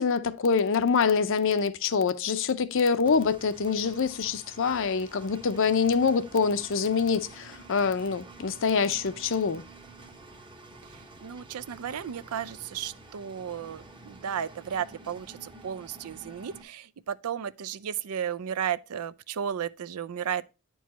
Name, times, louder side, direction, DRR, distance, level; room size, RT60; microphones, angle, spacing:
voice 1, 0.0-9.6, left 5 dB, 60° left, 0.6 m, -25 dB
Engine, 3.0-16.6, right 3 dB, 20° right, 0.9 m, -49 dB
voice 2, 10.9-20.4, right 8 dB, 80° right, 0.4 m, -34 dB
9.2 x 4.6 x 4.1 m
head